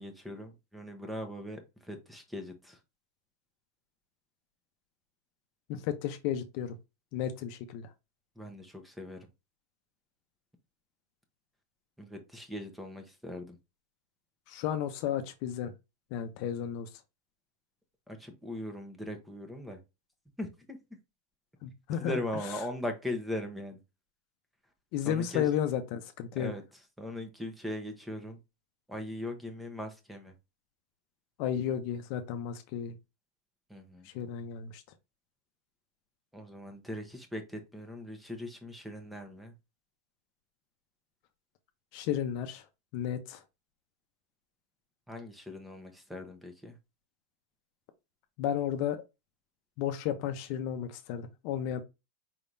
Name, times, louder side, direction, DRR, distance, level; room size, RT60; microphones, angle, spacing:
voice 1, 0.0-2.8 8.4-9.3 12.0-13.6 18.1-19.8 20.4-20.8 22.0-23.8 25.0-25.5 26.4-26.6 27.0-28.4 28.9-30.3 33.7-34.1 36.3-39.5 45.1-46.8, left 1 dB, 5° right, 1.1 m, -39 dB
voice 2, 5.7-6.8 7.1-7.9 14.5-15.7 16.1-16.9 21.6-22.2 24.9-26.5 31.4-33.0 34.0-34.8 41.9-42.6 42.9-43.4 48.4-49.0 49.8-51.8, left 9 dB, 55° left, 0.7 m, -33 dB
4.7 x 3.6 x 2.7 m
hypercardioid pair, 120°, 0 cm